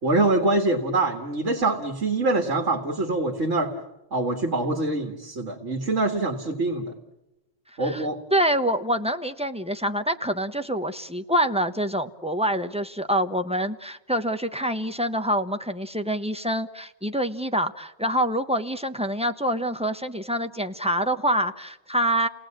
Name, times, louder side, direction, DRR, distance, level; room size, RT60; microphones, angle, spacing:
voice 1, 0.0-3.7 4.1-6.9 7.8-8.2, right 2 dB, 70° right, 4 dB, 2.1 m, -24 dB
voice 2, 8.3-22.3, equal, 5° right, 8 dB, 0.8 m, -26 dB
30.0 x 18.5 x 8.7 m, 0.99 s
omnidirectional pair, 1.3 m